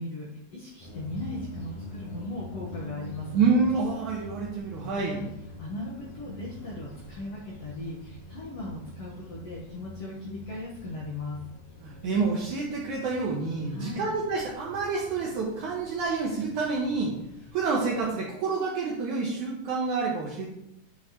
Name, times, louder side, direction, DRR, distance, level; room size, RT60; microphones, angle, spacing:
voice 1, 0.0-3.4 4.9-5.3 5.6-11.4 13.7-14.1, left 1 dB, 85° left, -5 dB, 1.3 m, -38 dB
sound 1, 0.8-18.1, left 1 dB, 60° left, 3.9 m, -45 dB
voice 2, 3.3-5.2 11.8-17.2 17.5-20.5, right 4 dB, 75° right, -2 dB, 1.8 m, -28 dB
10.0 x 6.3 x 3.0 m, 0.82 s
omnidirectional pair, 4.8 m